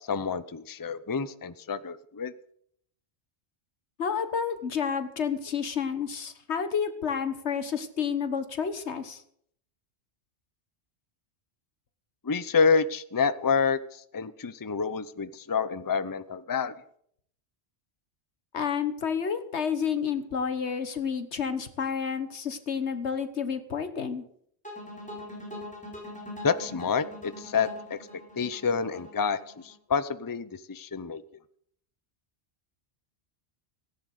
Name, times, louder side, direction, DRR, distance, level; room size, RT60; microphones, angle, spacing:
voice 1, 0.1-2.3 12.2-16.7 26.4-28.0 28.4-29.4 29.6-31.2, left 5 dB, 25° left, 14 dB, 0.6 m, -28 dB
voice 2, 4.0-9.2 18.5-24.2, left 7 dB, 85° left, 10 dB, 1.6 m, -30 dB
sound 1, 24.6-29.7, left 1 dB, 5° left, 5.3 m, -42 dB
17.5 x 10.5 x 6.7 m, 0.67 s
omnidirectional pair, 1.1 m